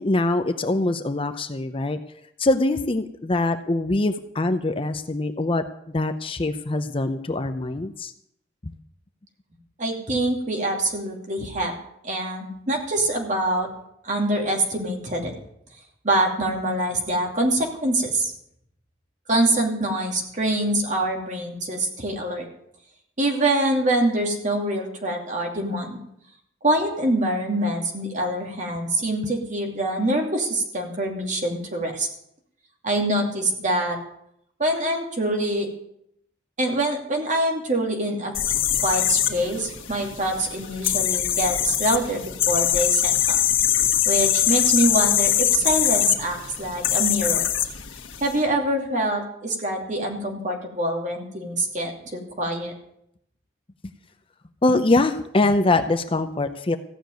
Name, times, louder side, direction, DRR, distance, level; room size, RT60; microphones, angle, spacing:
voice 1, 0.0-2.0 2.4-5.6 5.9-8.1 8.6-8.7 54.6-56.8, left 2 dB, 30° left, 8 dB, 0.6 m, -23 dB
voice 2, 9.8-11.7 12.0-13.7 14.0-15.3 16.0-18.3 19.3-22.5 23.2-26.0 26.6-32.1 32.8-34.0 34.6-35.7 36.6-38.3 38.8-43.3 44.0-47.4 48.2-52.7, right 1 dB, 40° right, 1 dB, 2.6 m, -25 dB
sound 1, 38.3-48.3, left 11 dB, 90° left, 1.7 m, -23 dB
15.5 x 6.7 x 9.2 m, 0.75 s
head